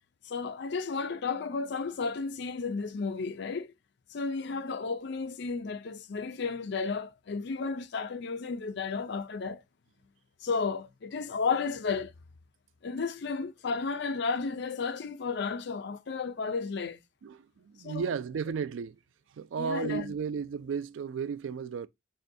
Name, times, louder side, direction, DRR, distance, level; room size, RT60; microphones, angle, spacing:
voice 1, 0.2-3.7 4.1-9.6 10.4-12.1 12.8-17.0 17.8-18.1 19.6-20.1, left 4 dB, 65° left, 0.5 m, -33 dB
voice 2, 17.2-19.0 19.4-21.9, right 6 dB, 85° right, 0.3 m, -34 dB
6.3 x 2.2 x 2.6 m
head